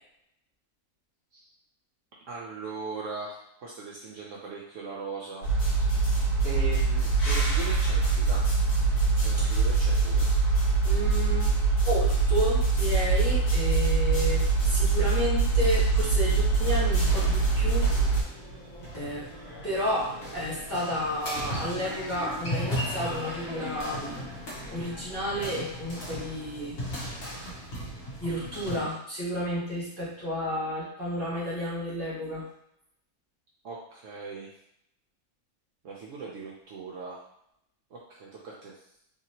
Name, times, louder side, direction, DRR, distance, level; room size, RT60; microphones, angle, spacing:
voice 1, 2.3-5.4 6.4-8.4 9.1-10.3 28.6-28.9 33.6-34.5 35.8-37.2 37.9-38.7, right 4 dB, 65° right, -4 dB, 0.9 m, -39 dB
sound 1, 5.4-18.2, right 4 dB, 85° left, 1.5 m, -24 dB
voice 2, 10.8-11.5 11.8-17.9 18.9-19.3 19.6-26.8 28.2-32.4, equal, 10° left, -9 dB, 1.0 m, -31 dB
sound 2, 14.5-28.8, equal, 60° left, 1.4 m, -38 dB
3.2 x 2.7 x 2.8 m, 0.75 s
omnidirectional pair, 1.6 m